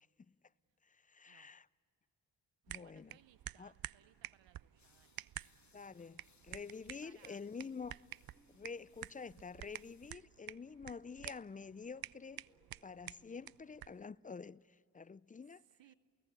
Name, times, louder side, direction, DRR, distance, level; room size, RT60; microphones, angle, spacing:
voice 1, 0.8-1.7 2.7-3.2 3.6-3.7 5.7-8.0 8.5-12.4 12.8-15.6, left 5 dB, 20° left, 0.5 m, -48 dB
sound 1, 2.7-14.1, right 13 dB, 55° right, 0.5 m, -51 dB
voice 2, 2.8-5.2 6.8-7.5 15.4-15.9, right 11 dB, 90° right, 0.9 m, -67 dB
sound 2, 4.8-10.2, left 5 dB, 40° left, 1.7 m, -72 dB
sound 3, 10.3-10.4 12.5-13.0, equal, ahead, 2.9 m, -75 dB
28.5 x 17.5 x 8.2 m
cardioid pair, 45°, 43 cm